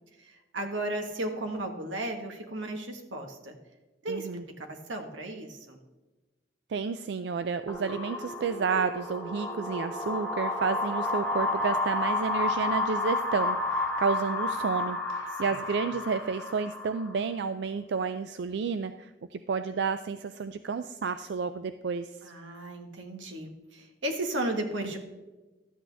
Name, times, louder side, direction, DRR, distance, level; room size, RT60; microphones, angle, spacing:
voice 1, 0.2-3.6 4.0-4.3 4.6-5.8 15.3-15.6 22.2-25.0, right 1 dB, 90° right, 3 dB, 1.5 m, -35 dB
voice 2, 4.1-4.4 6.7-22.3, right 5 dB, 65° right, 10 dB, 0.3 m, -31 dB
sound 1, 7.7-17.1, left 2 dB, 10° left, 2.4 m, -31 dB
12.5 x 8.5 x 3.4 m, 1.1 s
head